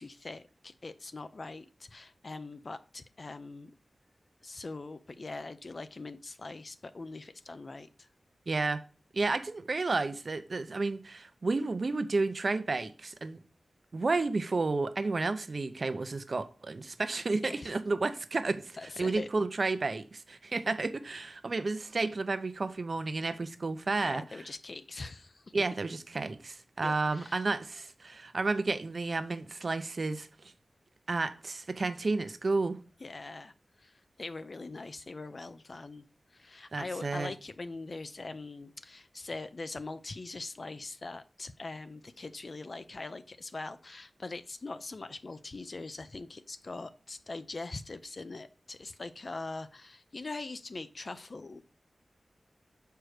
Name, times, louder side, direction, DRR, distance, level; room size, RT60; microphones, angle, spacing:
voice 1, 0.0-3.7 4.4-8.1 17.3-17.7 18.8-19.3 24.0-25.5 26.8-27.4 33.0-36.0 36.3-51.6, left 3 dB, 50° left, 0.5 m, -42 dB
voice 2, 8.5-8.8 9.1-13.4 13.9-24.2 25.5-30.3 31.1-32.8 36.7-37.3, right 3 dB, 55° right, 0.7 m, -31 dB
6.3 x 4.6 x 4.9 m
wide cardioid pair, 90°, 0 cm